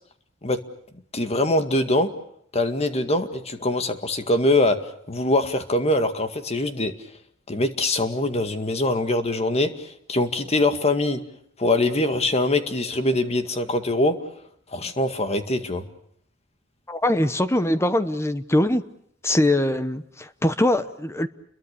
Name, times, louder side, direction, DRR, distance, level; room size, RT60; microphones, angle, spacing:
voice 1, 1.1-2.1 2.5-4.8 5.1-6.9 7.5-11.2 11.6-14.2 14.7-15.9, left 2 dB, 35° left, 8 dB, 2.0 m, -23 dB
voice 2, 16.9-18.8 19.2-21.3, left 1 dB, 15° left, 12 dB, 1.0 m, -22 dB
30.0 x 22.5 x 6.8 m, 0.68 s
head